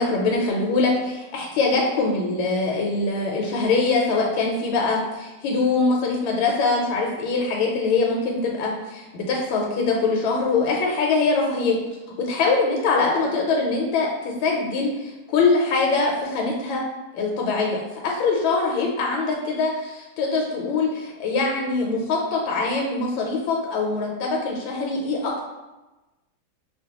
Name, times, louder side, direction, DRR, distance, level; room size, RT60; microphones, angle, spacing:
voice 1, 0.0-11.7 12.2-16.8 17.1-25.4, left 3 dB, 90° left, -1 dB, 1.4 m, -23 dB
5.0 x 2.1 x 2.8 m, 1.1 s
omnidirectional pair, 2.1 m